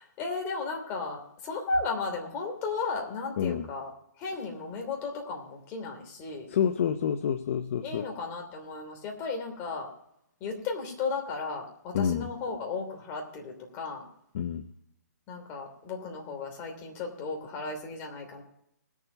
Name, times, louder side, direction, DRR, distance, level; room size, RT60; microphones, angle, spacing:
voice 1, 0.0-3.9 4.2-6.5 7.8-9.9 10.4-14.1 15.3-18.4, left 4 dB, 25° left, 2 dB, 3.0 m, -35 dB
voice 2, 3.4-3.7 6.5-8.1 11.9-12.3 14.3-14.6, left 8 dB, 45° left, 10 dB, 0.7 m, -28 dB
19.5 x 7.4 x 5.3 m, 0.77 s
figure-of-eight pair, 140°, 10 cm